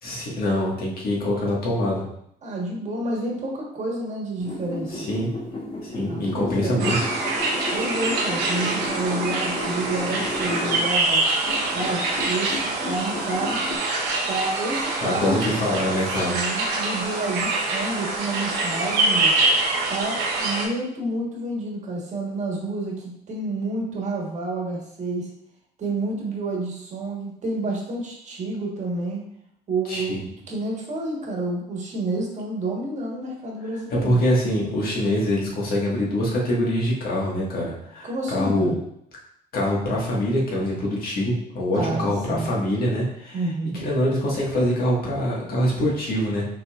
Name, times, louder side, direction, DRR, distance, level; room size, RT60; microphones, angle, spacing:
voice 1, 0.0-2.1 4.9-5.3 5.8-7.0 15.0-16.3 29.9-30.2 33.9-38.7 39.5-46.5, left 1 dB, 60° left, -4 dB, 1.6 m, -24 dB
voice 2, 2.4-5.1 6.0-6.9 7.7-11.2 11.7-13.6 14.3-15.5 16.2-19.4 19.9-25.3 25.8-29.2 29.7-34.2 38.0-38.8 41.7-42.5 43.3-43.8, right 2 dB, 45° right, -1 dB, 1.3 m, -29 dB
sound 1, 4.4-10.9 11.3-13.8, left 2 dB, 30° left, 1.1 m, -33 dB
sound 2, 6.8-20.7, right 2 dB, 80° right, 1.1 m, -25 dB
5.8 x 3.6 x 2.4 m, 0.74 s
cardioid pair, 110°, 17 cm